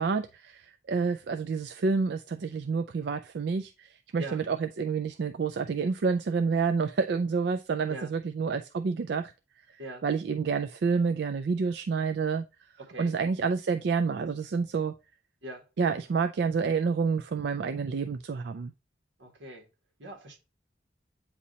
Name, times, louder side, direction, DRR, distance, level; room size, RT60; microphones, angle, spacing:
voice 1, 0.0-9.3 10.0-12.4 13.0-14.9 15.8-18.7, right 5 dB, 60° right, 0.3 m, -28 dB
voice 2, 12.8-13.2 15.4-15.6 19.2-19.7 20.0-20.4, right 1 dB, 80° right, 1.9 m, -42 dB
8.5 x 2.8 x 4.1 m
head